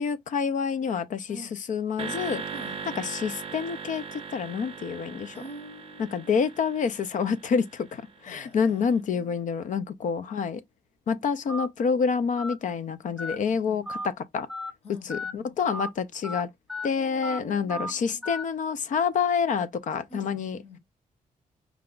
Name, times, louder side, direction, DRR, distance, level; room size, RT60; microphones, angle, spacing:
voice 1, 0.0-2.4 3.0-5.3 6.0-10.6 11.1-14.5 15.0-16.5 16.8-20.6, left 6 dB, 60° left, 0.6 m, -28 dB
voice 2, 1.3-1.6 2.5-3.1 5.3-6.4 8.2-9.5 13.3-13.9 14.8-15.6 16.8-18.2 20.1-20.8, left 1 dB, 45° left, 1.3 m, -46 dB
sound 1, 2.0-8.4, right 5 dB, 40° right, 0.6 m, -39 dB
Telephone, 11.5-11.7 12.4-12.5 13.2-13.4 13.9-14.1 14.5-14.7 15.1-15.3 15.7-15.9 16.2-16.4 16.7-16.9 17.2-17.4 17.7-17.9 18.2-18.4, left 1 dB, ahead, 0.5 m, -34 dB
4.7 x 2.3 x 3.8 m
cardioid pair, 120°, 14 cm